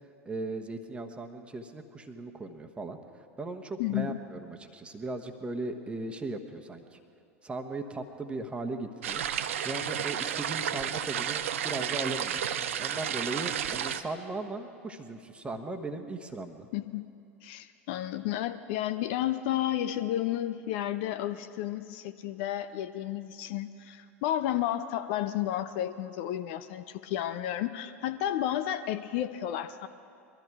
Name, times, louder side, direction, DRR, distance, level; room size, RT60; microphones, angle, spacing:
voice 1, 0.2-3.0 3.4-7.0 7.4-9.2 9.6-12.5 12.8-16.7, right 2 dB, 15° right, 5 dB, 1.2 m, -37 dB
voice 2, 3.8-4.2 16.7-17.1 17.4-29.9, left 12 dB, 50° left, 12 dB, 0.5 m, -32 dB
sound 1, 9.0-14.0, right 9 dB, 65° right, 0.6 m, -32 dB
22.0 x 13.5 x 4.8 m, 2.5 s
figure-of-eight pair, 85°, 8 cm